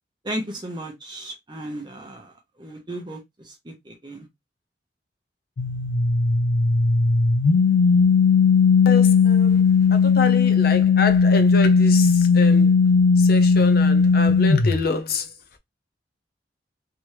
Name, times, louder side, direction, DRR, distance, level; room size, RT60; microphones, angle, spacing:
voice 1, 0.2-4.3, right 1 dB, 25° right, 0.9 m, -35 dB
sound 1, 5.6-14.8, left 5 dB, 85° left, 0.5 m, -17 dB
voice 2, 8.9-9.6 9.9-12.7 13.2-15.3, left 3 dB, 55° left, 0.8 m, -27 dB
3.4 x 3.1 x 3.0 m
head